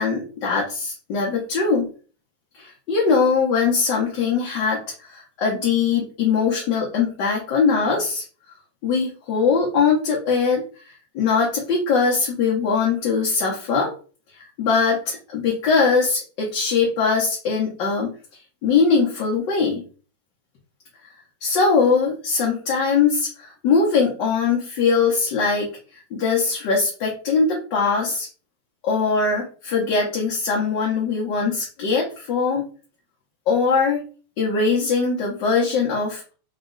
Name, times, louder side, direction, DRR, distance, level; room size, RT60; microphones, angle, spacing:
voice 1, 0.0-1.9 2.5-8.2 8.8-10.6 11.1-13.9 14.6-18.1 18.6-19.8 21.4-25.7 26.1-28.3 28.8-32.7 33.5-34.0 34.4-36.3, left 5 dB, 65° left, -3 dB, 1.5 m, -21 dB
4.2 x 2.3 x 3.8 m, 0.37 s
omnidirectional pair, 2.2 m